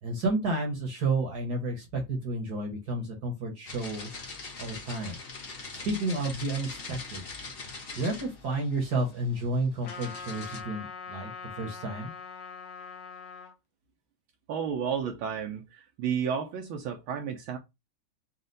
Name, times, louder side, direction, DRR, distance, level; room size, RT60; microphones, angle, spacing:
voice 1, 0.0-4.1 4.6-5.2 5.8-7.2 7.9-12.1, right 2 dB, 55° right, 1.3 m, -31 dB
sound 1, 3.6-10.6, left 4 dB, 40° left, 0.8 m, -43 dB
Trumpet, 9.8-13.5, left 5 dB, 65° left, 1.2 m, -42 dB
voice 2, 14.5-17.6, right 7 dB, 75° right, 1.4 m, -32 dB
4.3 x 2.4 x 3.9 m
omnidirectional pair, 2.4 m